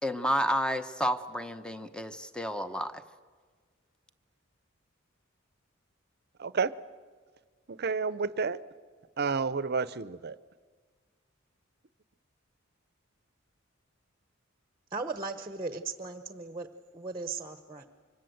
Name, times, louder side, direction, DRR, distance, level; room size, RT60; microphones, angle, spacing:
voice 1, 0.0-3.0, equal, 5° left, 10 dB, 1.0 m, -31 dB
voice 2, 6.4-6.7 7.7-8.6 9.2-10.4, right 5 dB, 55° right, 17 dB, 0.7 m, -30 dB
voice 3, 14.9-16.7 16.9-17.9, right 3 dB, 20° right, 10 dB, 1.0 m, -37 dB
25.0 x 25.0 x 7.9 m, 1.5 s
head